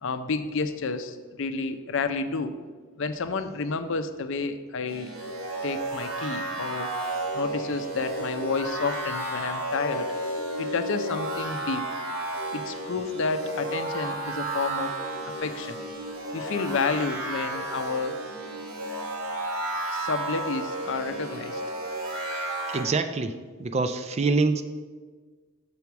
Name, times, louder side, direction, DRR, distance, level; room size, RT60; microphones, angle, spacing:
voice 1, 0.0-2.6 3.0-5.1 5.6-6.9 7.3-10.1 10.6-11.8 12.5-14.9 15.2-15.8 16.3-18.2 19.9-21.6, left 4 dB, 60° left, 10 dB, 0.5 m, -30 dB
sound 1, 4.9-22.8, right 1 dB, 80° right, 1.6 m, -32 dB
voice 2, 22.7-24.6, right 3 dB, 30° right, 10 dB, 0.3 m, -25 dB
6.9 x 4.7 x 6.9 m, 1.4 s
head